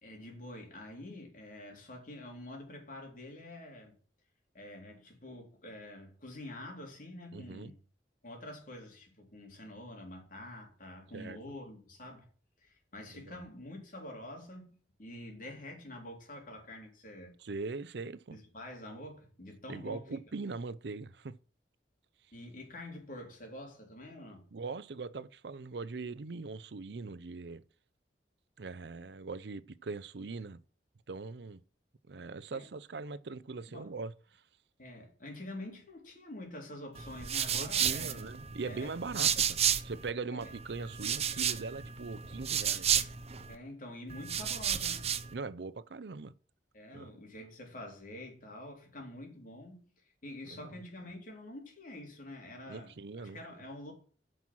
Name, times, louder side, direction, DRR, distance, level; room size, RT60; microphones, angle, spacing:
voice 1, 0.0-3.9 4.5-7.8 8.2-12.3 12.6-17.3 18.3-20.2 22.3-24.4 32.5-32.7 33.7-33.9 34.8-38.3 38.6-39.4 40.3-40.5 43.5-45.1 46.7-53.9, left 1 dB, 50° left, 3.8 m, -47 dB
voice 2, 7.3-7.7 11.1-11.4 13.1-13.4 17.4-18.4 19.7-21.4 24.5-27.6 28.6-30.6 31.1-31.6 32.1-34.4 37.5-39.6 39.8-43.1 45.3-46.3 46.9-47.1 50.4-50.8 52.7-53.4, right 4 dB, 70° right, 0.6 m, -41 dB
sound 1, 37.0-40.1 40.4-43.6 44.1-45.3, right 9 dB, 35° right, 0.8 m, -32 dB
9.6 x 6.2 x 6.1 m
head